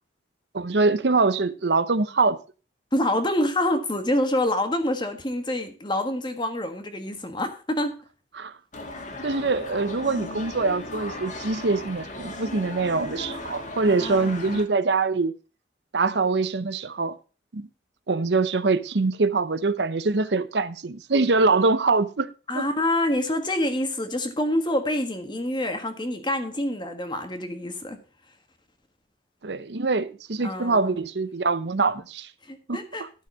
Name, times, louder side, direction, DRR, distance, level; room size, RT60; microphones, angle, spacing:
voice 1, 0.5-2.4 8.3-8.5 9.2-15.3 15.9-17.2 17.5-17.7 18.1-22.3 22.5-22.7 29.4-32.3 32.7-33.1, right 3 dB, 70° right, 0.7 m, -24 dB
voice 2, 2.9-8.0 13.8-14.6 22.5-28.0 30.4-31.0 32.4-33.3, left 1 dB, 25° left, 1.5 m, -27 dB
sound 1, 8.7-14.6, left 2 dB, 45° left, 1.9 m, -37 dB
12.5 x 6.2 x 5.6 m
head